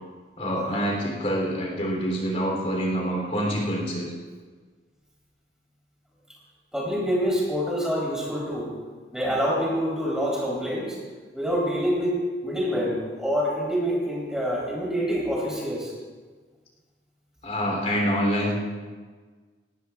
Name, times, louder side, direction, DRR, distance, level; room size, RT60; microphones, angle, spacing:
voice 1, 0.4-4.1 17.4-18.5, equal, 40° left, -2 dB, 3.3 m, -26 dB
voice 2, 6.7-8.7 9.1-11.0 11.3-15.9, equal, 5° right, -5 dB, 3.8 m, -26 dB
19.5 x 19.0 x 2.5 m, 1.4 s
head